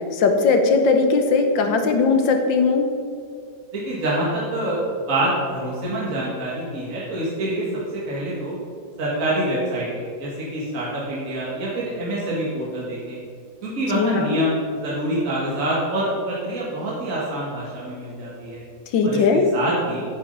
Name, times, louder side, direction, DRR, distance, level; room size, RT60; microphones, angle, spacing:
voice 1, 0.1-2.9 13.9-14.4 18.9-19.5, left 4 dB, 80° left, 5 dB, 1.7 m, -19 dB
voice 2, 3.7-4.8 5.1-7.7 7.9-8.6 9.0-13.2 13.6-18.6 19.0-19.2 19.5-20.0, right 1 dB, 45° right, -6 dB, 2.1 m, -26 dB
9.6 x 6.6 x 5.3 m, 2.3 s
omnidirectional pair, 2.0 m